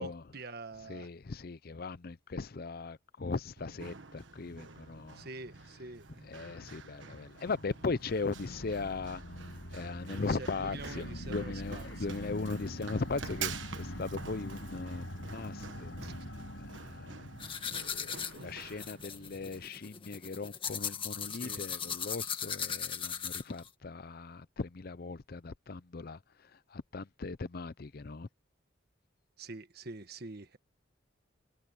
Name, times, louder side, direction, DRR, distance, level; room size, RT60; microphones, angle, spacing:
voice 1, 0.0-1.1 5.1-6.1 10.1-12.1 16.0-16.1 21.3-21.6 29.4-30.6, right 3 dB, 55° right, 1.5 m, -46 dB
voice 2, 0.9-5.3 6.2-9.2 9.7-15.9 16.8-17.3 17.6-26.2 26.7-28.3, left 4 dB, 50° left, 0.6 m, -38 dB
Run, 3.6-19.6, right 6 dB, 75° right, 1.4 m, -47 dB
sound 1, 7.5-18.0, left 1 dB, 75° left, 6.2 m, -44 dB
sound 2, 17.4-23.7, left 7 dB, 25° left, 1.7 m, -38 dB
head